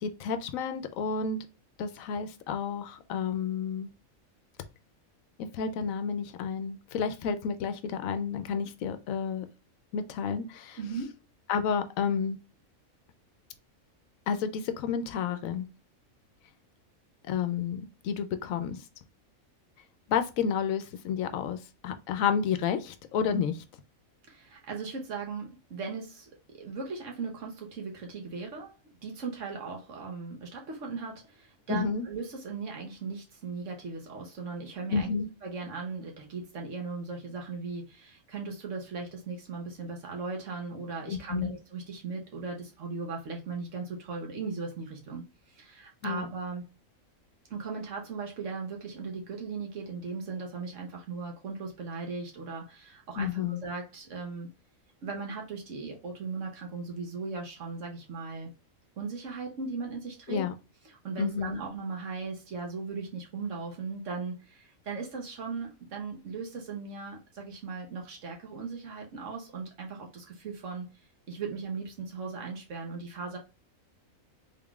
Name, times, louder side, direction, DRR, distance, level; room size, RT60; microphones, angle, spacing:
voice 1, 0.0-1.5 1.8-3.9 5.4-9.5 9.9-10.8 11.5-12.4 14.3-15.7 17.2-18.8 20.1-23.6 31.7-32.1 34.9-35.3 41.1-41.6 46.0-46.3 53.2-53.6 60.3-60.5 61.2-61.6, left 6 dB, 80° left, 1.0 m, -31 dB
voice 2, 10.8-11.2 24.3-28.7 29.0-35.1 35.4-46.6 47.5-54.5 55.0-58.5 59.0-60.5 60.8-70.9 71.3-73.4, right 4 dB, 65° right, 1.3 m, -38 dB
3.7 x 3.6 x 2.3 m
omnidirectional pair, 1.4 m